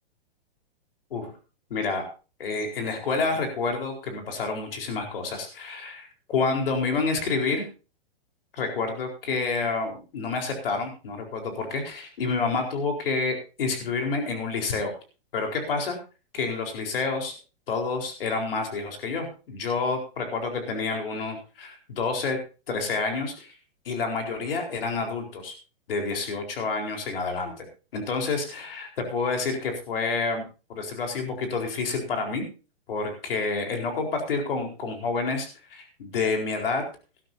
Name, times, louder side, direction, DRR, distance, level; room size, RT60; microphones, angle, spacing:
voice 1, 1.7-2.0 2.4-7.6 8.5-14.9 15.3-16.0 16.3-17.3 17.7-22.4 22.7-23.6 23.8-25.5 25.9-27.7 27.9-30.4 30.7-32.4 32.9-36.8, left 4 dB, 70° left, 3 dB, 4.4 m, -28 dB
19.0 x 12.5 x 2.7 m, 0.33 s
hypercardioid pair, 170°, 30 cm